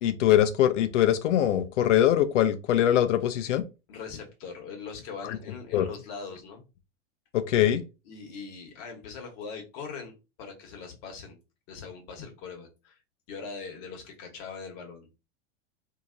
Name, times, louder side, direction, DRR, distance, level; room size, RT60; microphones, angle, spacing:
voice 1, 0.0-3.6 5.2-5.4 5.7-5.9 7.3-7.8, left 11 dB, 75° left, 0.6 m, -22 dB
voice 2, 3.9-6.6 8.0-11.4 11.7-13.0 13.3-15.1, left 5 dB, 55° left, 1.2 m, -41 dB
2.8 x 2.8 x 2.4 m
hypercardioid pair, 95°, 37 cm